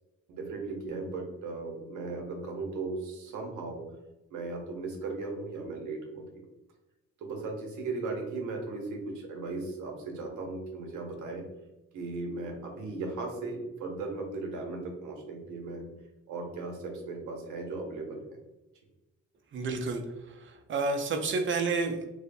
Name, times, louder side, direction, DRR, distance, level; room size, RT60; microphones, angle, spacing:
voice 1, 0.3-3.8 4.3-6.3 7.2-11.4 11.9-15.8 16.3-18.2, right 3 dB, 80° right, 1 dB, 0.8 m, -37 dB
voice 2, 19.5-22.1, right 3 dB, 40° right, 5 dB, 0.5 m, -30 dB
2.7 x 2.0 x 2.5 m, 1.0 s
cardioid pair, 90°, 30 cm